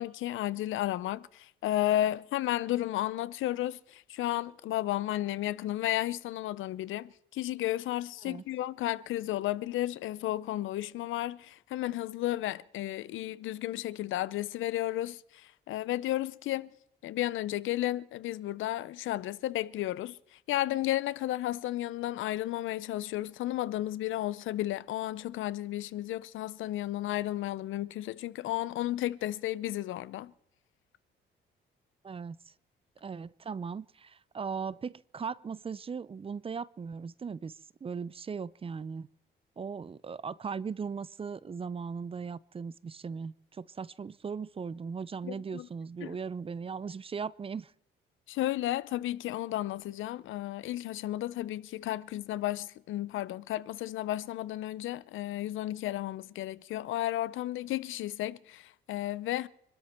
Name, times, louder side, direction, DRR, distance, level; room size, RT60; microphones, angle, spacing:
voice 1, 0.0-16.7 17.0-20.2 20.5-30.3 45.2-45.7 46.0-46.2 48.3-59.5, left 14 dB, 80° left, 0.7 m, -33 dB
voice 2, 32.0-32.4 33.0-37.6 37.8-39.1 39.6-47.7, right 5 dB, 30° right, 0.5 m, -38 dB
25.5 x 12.5 x 4.4 m
cardioid pair, 90°, 20 cm